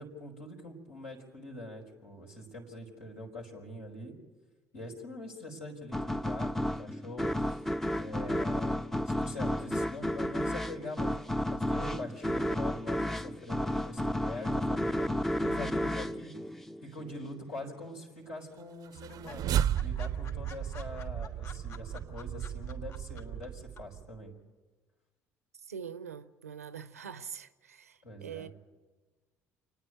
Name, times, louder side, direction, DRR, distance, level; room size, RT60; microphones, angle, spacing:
voice 1, 0.0-4.2 4.7-7.6 7.9-8.8 9.0-15.1 15.4-16.3 16.8-19.5 19.8-24.3 28.0-28.5, left 1 dB, 80° left, 4.5 m, -44 dB
sound 1, 5.9-17.2, left 1 dB, 5° left, 0.6 m, -32 dB
sound 2, 17.4-18.0 18.3-18.4 18.7-18.8 19.1-23.5 23.8-23.9, left 5 dB, 45° left, 3.0 m, -50 dB
sound 3, 18.9-24.2, right 10 dB, 50° right, 0.6 m, -34 dB
voice 2, 25.5-28.5, right 7 dB, 85° right, 0.7 m, -44 dB
28.5 x 9.9 x 10.0 m
figure-of-eight pair, 55°, 8 cm